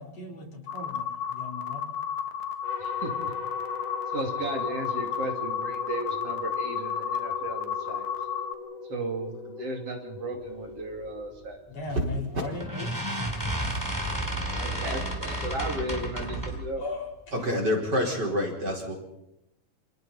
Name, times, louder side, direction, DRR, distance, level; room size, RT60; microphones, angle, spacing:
voice 1, 0.0-1.9 11.7-13.0 13.3-14.4 14.8-15.0 16.8-17.6, left 3 dB, 55° left, 0 dB, 5.2 m, -39 dB
sound 1, 0.7-8.5, left 8 dB, 70° left, 2.7 m, -32 dB
sound 2, 2.6-11.9, left 3 dB, 40° left, 5.8 m, -41 dB
voice 2, 2.8-3.1 4.1-8.1 8.9-11.6 14.5-16.8, right 2 dB, 55° right, 2 dB, 3.5 m, -35 dB
sound 3, 11.9-12.1 12.6-16.7, right 1 dB, 5° right, 3.6 m, -31 dB
voice 3, 17.3-18.9, left 1 dB, 35° right, 0 dB, 5.2 m, -27 dB
29.0 x 27.5 x 4.3 m, 0.87 s
omnidirectional pair, 3.4 m